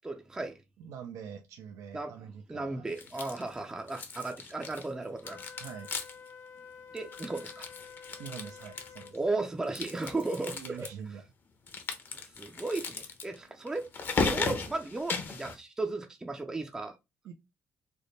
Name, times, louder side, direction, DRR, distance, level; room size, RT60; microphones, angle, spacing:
voice 1, 0.0-0.6 1.9-2.1 2.5-5.5 6.9-7.7 9.1-10.9 12.1-13.9 14.2-17.0, right 2 dB, 15° right, 0.4 m, -35 dB
voice 2, 0.8-2.9 5.6-5.9 8.2-9.2 10.5-11.3 17.2-17.3, right 7 dB, 80° right, 0.4 m, -44 dB
sound 1, 2.9-3.6 3.9-4.9 5.2-6.3 6.6-6.7 7.0-9.2 9.6-10.9 11.7-15.6, left 4 dB, 40° left, 0.7 m, -36 dB
Wind instrument woodwind instrument, 5.2-9.1, left 6 dB, 85° left, 0.6 m, -49 dB
3.3 x 2.1 x 3.9 m
cardioid pair, 115°, 5 cm